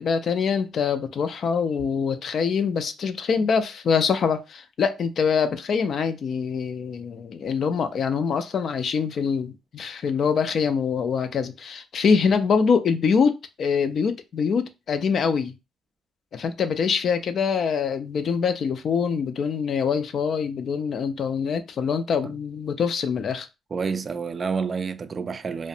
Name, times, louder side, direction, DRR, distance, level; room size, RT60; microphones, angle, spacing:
voice 1, 0.0-15.5 16.3-23.5, left 6 dB, 60° left, 0.3 m, -24 dB
voice 2, 23.7-25.7, right 5 dB, 40° right, 0.3 m, -29 dB
2.4 x 2.1 x 2.7 m
cardioid pair, 90°, 0 cm